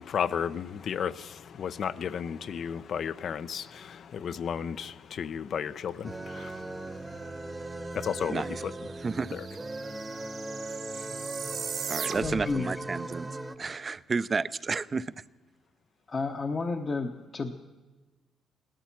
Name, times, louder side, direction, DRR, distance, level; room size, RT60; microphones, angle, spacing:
voice 1, 0.0-7.4 7.9-8.7 9.3-9.4 11.0-11.1, left 7 dB, 60° left, 15 dB, 0.6 m, -34 dB
sound 1, 6.0-13.6, right 2 dB, 15° right, 0.9 m, -38 dB
sound 2, 8.1-8.2 8.4-12.6, right 7 dB, 60° right, 1.1 m, -39 dB
voice 2, 8.3-8.6 9.0-9.4 11.9-13.3 13.6-15.2, right 4 dB, 35° right, 17 dB, 0.5 m, -31 dB
voice 3, 12.2-12.7 16.1-17.5, left 4 dB, 35° left, 5 dB, 0.9 m, -31 dB
17.5 x 12.5 x 5.9 m, 1.2 s
cardioid pair, 90°, 0 cm